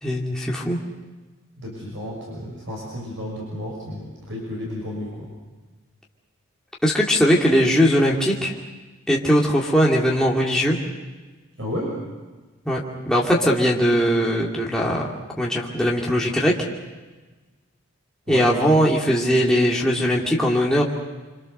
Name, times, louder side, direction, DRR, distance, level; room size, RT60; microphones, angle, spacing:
voice 1, 0.0-0.8 6.8-8.5 9.1-10.8 12.7-12.8 13.1-15.0 15.4-16.5 18.3-20.8, equal, 5° left, -4 dB, 2.5 m, -20 dB
voice 2, 1.6-5.3 11.6-12.0 18.3-18.5, left 1 dB, 60° right, -2 dB, 6.3 m, -32 dB
27.0 x 26.0 x 6.7 m, 1.3 s
head